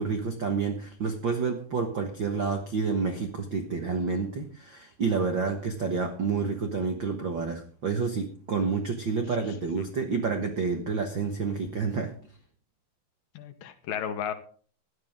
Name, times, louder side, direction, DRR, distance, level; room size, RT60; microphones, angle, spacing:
voice 1, 0.0-12.1, right 5 dB, 90° right, 5 dB, 1.0 m, -29 dB
voice 2, 9.5-9.9 13.3-14.3, left 8 dB, 70° left, 9 dB, 2.6 m, -34 dB
16.5 x 11.0 x 3.6 m, 0.43 s
omnidirectional pair, 4.4 m